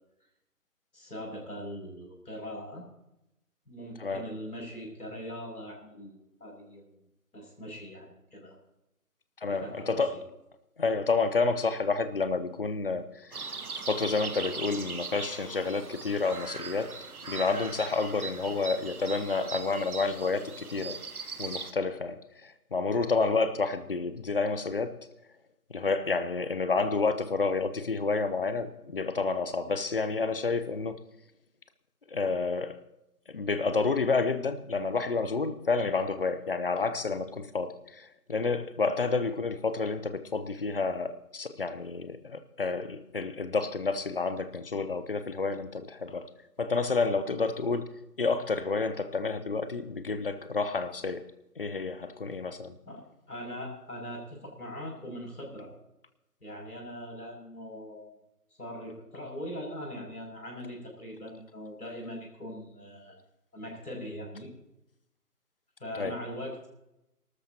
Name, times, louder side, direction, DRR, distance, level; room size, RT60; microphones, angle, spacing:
voice 1, 0.9-2.9 3.7-6.8 7.3-8.5 9.5-10.2 52.9-55.7 56.4-58.1 58.6-63.2 63.5-64.5 65.8-66.7, equal, 80° left, 6.6 m, -41 dB
voice 2, 9.4-10.2 10.8-13.5 13.9-17.0 17.2-21.0 21.4-25.0 25.7-31.0 32.1-32.8 33.3-46.3 46.6-47.9 48.2-51.3 51.6-52.8 65.9-66.2, left 4 dB, 40° left, 0.8 m, -29 dB
sound 1, 13.3-21.7, right 4 dB, 70° right, 1.2 m, -40 dB
25.0 x 13.0 x 2.9 m
figure-of-eight pair, 155°, 45 cm